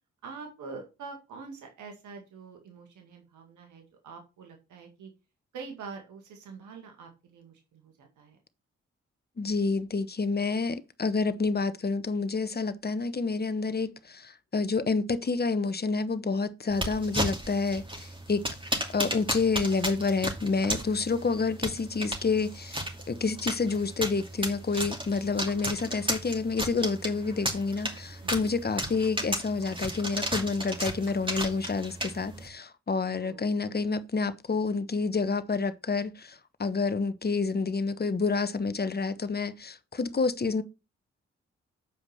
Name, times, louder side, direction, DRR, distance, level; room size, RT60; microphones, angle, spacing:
voice 1, 0.2-5.1 5.5-8.4 21.4-21.5 28.2-28.5 33.1-33.5, right 4 dB, 80° right, 2.0 m, -45 dB
voice 2, 9.4-18.4 18.9-40.6, left 4 dB, 35° left, 1.1 m, -29 dB
sound 1, 16.7-32.5, right 1 dB, 15° right, 2.5 m, -35 dB
8.1 x 5.0 x 5.7 m
supercardioid pair, 45°, 30 cm